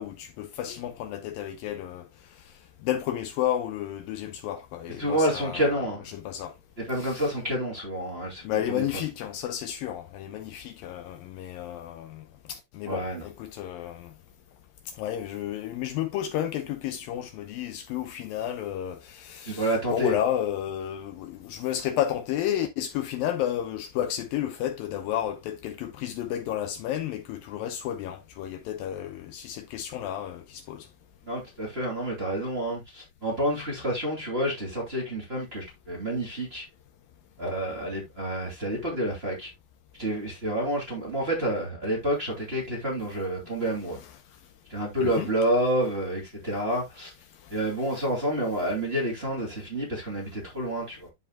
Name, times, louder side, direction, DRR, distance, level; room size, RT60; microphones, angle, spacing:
voice 1, 0.0-2.0 2.8-5.9 6.1-6.5 7.0-7.3 8.4-14.1 14.9-30.9 44.0-44.1 45.0-45.3, left 11 dB, 75° left, 2.3 m, -32 dB
voice 2, 5.0-6.0 6.8-8.8 12.9-13.2 19.4-20.2 31.3-36.7 37.4-39.5 40.0-44.0 44.7-47.1 47.5-51.1, right 1 dB, 20° right, 2.5 m, -29 dB
12.5 x 4.8 x 2.2 m
omnidirectional pair, 4.4 m